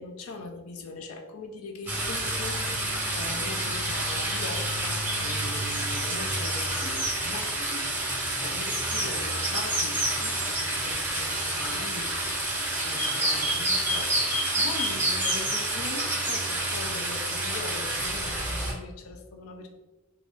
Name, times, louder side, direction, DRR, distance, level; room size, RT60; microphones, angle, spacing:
voice 1, 0.0-2.6 3.1-7.9 8.4-14.1 14.6-19.7, left 3 dB, 70° left, 4 dB, 0.4 m, -40 dB
sound 1, 1.9-18.7, right 1 dB, 10° right, 0.7 m, -28 dB
2.5 x 2.3 x 3.4 m, 1.1 s
head